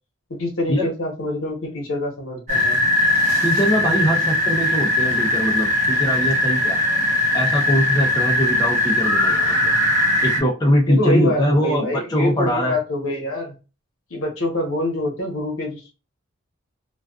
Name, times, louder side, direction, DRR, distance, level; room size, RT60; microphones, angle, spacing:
voice 1, 0.3-2.8 10.9-13.6 14.1-15.9, left 1 dB, 80° left, 0 dB, 1.0 m, -25 dB
sound 1, 2.5-10.4, left 1 dB, 35° right, 0.9 m, -20 dB
voice 2, 3.4-6.8 7.3-9.7 10.2-12.8, equal, 20° left, 0 dB, 0.5 m, -22 dB
2.3 x 2.3 x 2.3 m, 0.31 s
head